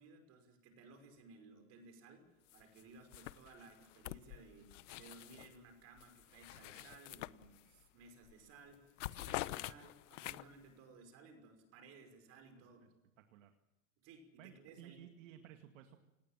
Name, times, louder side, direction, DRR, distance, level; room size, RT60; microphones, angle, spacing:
voice 1, 0.0-12.8 14.0-15.0, right 4 dB, 40° right, 6 dB, 5.8 m, -59 dB
sound 1, 2.5-2.8 3.1-5.6 6.0-7.9 8.2-8.5 8.7-10.7, left 17 dB, 70° left, 1.0 m, -46 dB
voice 2, 12.6-13.5 14.4-16.0, right 10 dB, 75° right, 6 dB, 2.3 m, -58 dB
29.0 x 19.0 x 7.6 m, 0.98 s
supercardioid pair, 160°, 38 cm